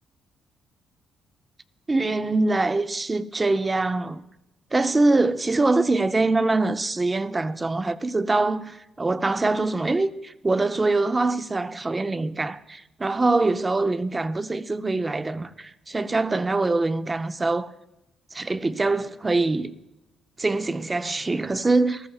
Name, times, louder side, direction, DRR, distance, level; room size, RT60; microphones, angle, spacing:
voice 1, 1.9-4.2 4.7-17.7 18.3-19.8 20.4-22.1, right 2 dB, 25° right, 0.6 m, -24 dB
19.5 x 14.0 x 2.4 m
cardioid pair, 90°, 0 cm